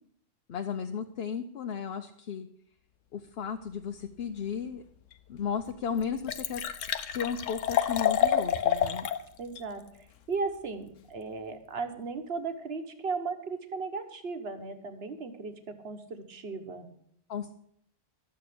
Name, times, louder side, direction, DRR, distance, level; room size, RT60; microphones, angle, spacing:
voice 1, 0.5-2.5 3.1-4.8 5.3-6.6 7.1-9.1 17.3-17.5, left 7 dB, 60° left, 5 dB, 0.9 m, -34 dB
Liquid, 5.1-5.2 5.7-5.8 6.0-9.2 9.6-9.7, left 9 dB, 80° left, 1.1 m, -28 dB
voice 2, 9.4-9.8 10.3-16.9, right 4 dB, 55° right, 7 dB, 1.4 m, -36 dB
12.5 x 7.8 x 6.7 m, 0.69 s
omnidirectional pair, 1.3 m